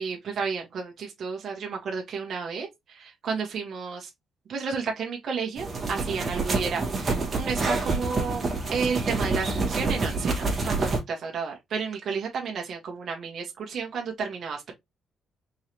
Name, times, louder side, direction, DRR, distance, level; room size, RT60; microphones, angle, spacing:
voice 1, 0.0-4.1 4.5-14.7, right 5 dB, 55° right, 1.5 m, -32 dB
sound 1, 5.6-11.0, right 3 dB, 30° right, 1.7 m, -27 dB
4.6 x 3.3 x 2.9 m
cardioid pair, 130°, 0 cm